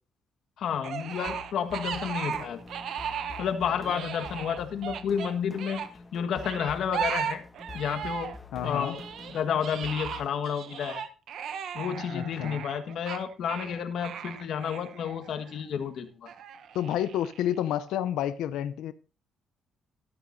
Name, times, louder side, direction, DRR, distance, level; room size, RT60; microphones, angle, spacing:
voice 1, 0.6-2.6 3.4-5.8 6.1-7.4 7.7-8.3 8.6-9.0 9.3-11.0 11.7-16.3, left 8 dB, 70° left, 1.6 m, -31 dB
sound 1, 0.8-3.5 3.8-5.9 6.4-8.4 8.6-15.6 16.3-17.6, right 8 dB, 70° right, 1.0 m, -36 dB
sound 2, 1.1-10.3, left 4 dB, 25° left, 1.1 m, -47 dB
voice 2, 8.5-9.0 12.1-12.6 16.7-18.9, left 11 dB, 85° left, 0.6 m, -30 dB
13.0 x 12.5 x 2.7 m
cardioid pair, 90°, 0 cm